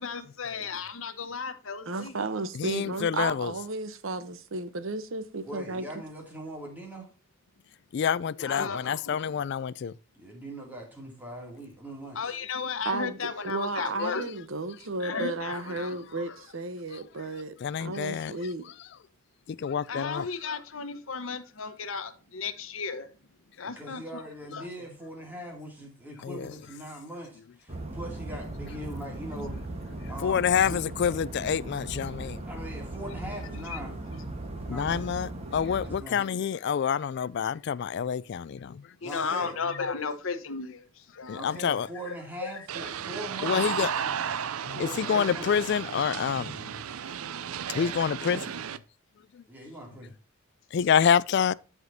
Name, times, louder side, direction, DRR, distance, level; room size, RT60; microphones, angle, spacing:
voice 1, 0.0-2.2 8.3-9.2 12.1-14.3 15.0-16.3 19.9-23.1 23.6-24.2 24.5-24.7 33.7-33.8 38.6-38.7 39.0-42.9, left 5 dB, 70° left, 1.0 m, -35 dB
voice 2, 1.9-5.9 12.8-18.6, right 3 dB, 65° right, 0.9 m, -34 dB
voice 3, 2.6-3.5 7.9-9.9 17.6-18.3 19.6-20.2 26.2-26.5 30.2-32.4 34.7-38.8 41.3-41.9 43.4-43.9 44.7-46.5 47.7-48.4 50.7-51.5, left 7 dB, 50° left, 0.3 m, -27 dB
voice 4, 5.4-7.1 10.1-12.3 23.8-29.5 30.1-30.8 32.5-33.9 34.7-35.0 35.8-36.2 39.0-39.5 41.4-44.1 44.6-45.5 47.7-48.0 49.5-50.1, right 1 dB, 10° right, 2.5 m, -41 dB
sound 1, 27.7-36.0, right 2 dB, 30° right, 1.2 m, -38 dB
sound 2, 42.7-48.8, right 8 dB, 85° right, 0.5 m, -34 dB
13.0 x 4.9 x 2.7 m
head